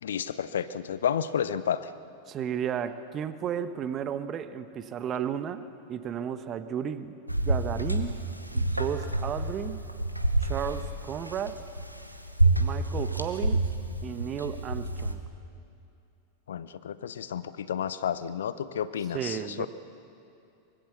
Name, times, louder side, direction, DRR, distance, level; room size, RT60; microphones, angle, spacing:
voice 1, 0.0-1.9 16.5-19.7, left 8 dB, 65° left, 15 dB, 0.7 m, -31 dB
voice 2, 2.3-7.1 7.4-8.2 8.5-9.8 10.4-11.6 12.5-13.6 14.0-15.2 19.1-19.7, right 8 dB, 30° right, 12 dB, 1.1 m, -33 dB
sound 1, 7.3-15.1, right 2 dB, 90° right, 1.3 m, -28 dB
24.0 x 21.0 x 6.9 m, 2.7 s
figure-of-eight pair, 90°, 0 cm